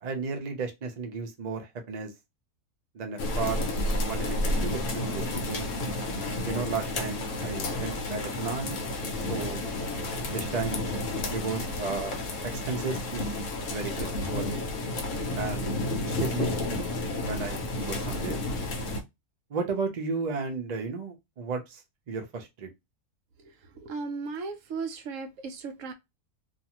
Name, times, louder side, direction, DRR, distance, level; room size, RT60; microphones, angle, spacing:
voice 1, 0.0-2.1 2.9-3.7 4.0-5.7 6.5-8.8 9.3-9.6 10.3-10.8 11.3-12.2 12.7-13.3 13.7-14.7 15.3-16.6 17.2-18.4 19.5-21.8 22.1-22.7, right 4 dB, 85° right, 0.3 m, -34 dB
sound 1, 3.2-19.0, left 2 dB, 65° left, 0.9 m, -31 dB
voice 2, 23.8-25.9, right 4 dB, 65° right, 0.9 m, -36 dB
2.6 x 2.3 x 2.8 m
omnidirectional pair, 1.6 m